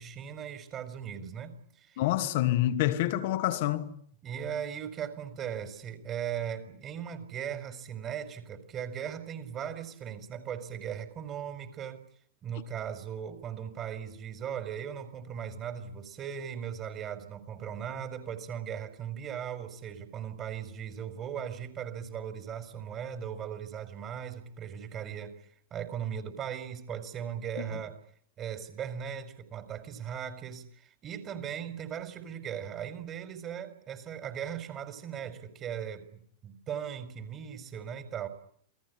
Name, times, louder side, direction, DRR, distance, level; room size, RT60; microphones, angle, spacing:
voice 1, 0.0-2.0 4.2-12.0 12.4-25.3 25.7-28.0 28.4-38.3, right 8 dB, 30° right, 4.7 m, -38 dB
voice 2, 2.0-3.9, left 14 dB, 50° left, 2.6 m, -27 dB
28.0 x 18.5 x 9.9 m
figure-of-eight pair, 90°, 0 cm